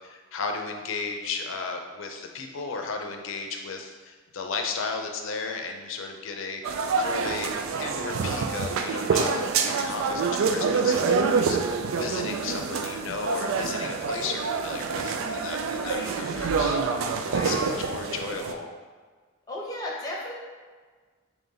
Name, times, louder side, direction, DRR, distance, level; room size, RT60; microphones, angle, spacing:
voice 1, 0.0-6.6 7.0-7.5 7.8-9.3 9.6-16.8 17.3-18.7, left 4 dB, 75° left, 3 dB, 0.5 m, -34 dB
sound 1, 6.6-18.5, right 5 dB, 90° right, 0.4 m, -27 dB
voice 2, 15.8-16.3 17.3-18.3 19.5-20.3, left 1 dB, 20° left, -4 dB, 0.8 m, -37 dB
3.8 x 2.9 x 4.0 m, 1.5 s
head